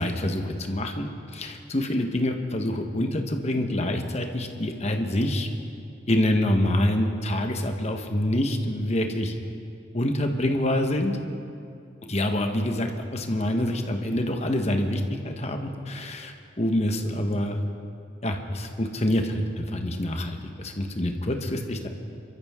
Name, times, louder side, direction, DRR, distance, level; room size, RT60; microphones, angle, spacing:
voice 1, 0.0-5.5 6.1-9.3 9.9-11.2 12.1-17.6 18.2-21.9, left 1 dB, 35° left, 4 dB, 1.2 m, -26 dB
27.0 x 13.5 x 3.7 m, 2.5 s
head